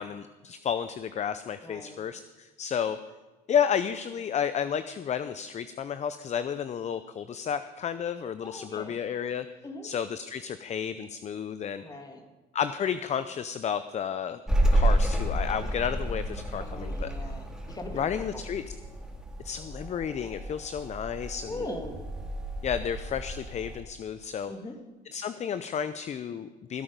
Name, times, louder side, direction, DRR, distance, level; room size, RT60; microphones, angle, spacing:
voice 1, 0.0-3.0 3.5-9.5 9.8-11.8 12.5-17.3 17.9-18.8 19.4-21.7 22.6-24.5 25.1-26.8, left 8 dB, 35° left, 12 dB, 0.5 m, -32 dB
voice 2, 1.6-2.0 8.4-9.0 9.6-9.9 11.8-12.2 16.6-18.4 21.4-22.0 24.5-24.7, left 1 dB, 20° left, 4 dB, 2.1 m, -40 dB
sound 1, 14.5-23.8, right 1 dB, 5° right, 2.7 m, -30 dB
16.5 x 8.8 x 5.2 m, 1.2 s
supercardioid pair, 80°, 20 cm